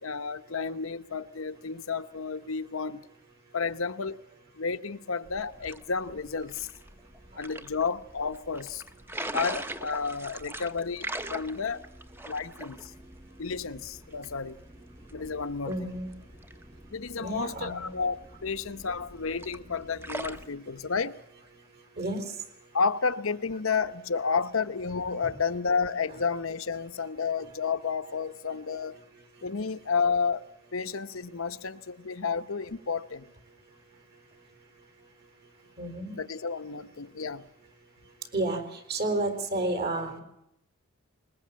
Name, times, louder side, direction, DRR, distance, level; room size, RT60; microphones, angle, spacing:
voice 1, 0.0-3.0 3.5-4.2 4.6-6.7 7.4-8.8 9.3-11.9 12.2-12.9 13.4-14.6 15.1-15.8 16.9-21.2 22.7-29.0 29.4-30.4 30.7-33.3 36.2-37.5, left 5 dB, 70° left, 0.9 m, -31 dB
sound 1, 5.2-20.5, right 1 dB, 10° right, 0.9 m, -43 dB
voice 2, 15.6-16.1 17.2-17.9 22.0-22.2 35.8-36.2 38.3-40.2, right 2 dB, 50° right, 4.1 m, -31 dB
21.0 x 21.0 x 8.7 m
head